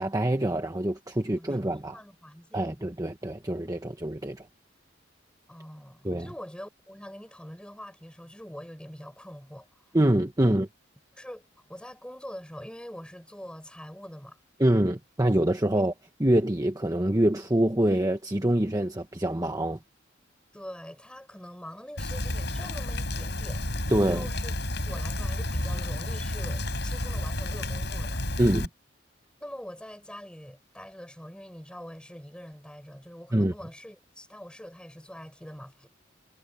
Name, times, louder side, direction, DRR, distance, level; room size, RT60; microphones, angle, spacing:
voice 1, 0.0-2.0 2.5-4.5 6.0-6.3 9.9-10.7 14.6-15.9 16.2-19.8 23.9-24.3 28.4-28.7 33.3-33.5, right 1 dB, 20° right, 1.2 m, -25 dB
voice 2, 1.1-2.9 5.5-9.7 10.4-10.6 11.1-11.4 11.7-14.4 20.5-23.7 24.1-24.5 24.9-28.2 29.4-35.9, equal, 5° left, 7.5 m, -44 dB
Rain, 22.0-28.7, left 1 dB, 60° left, 8.0 m, -31 dB
head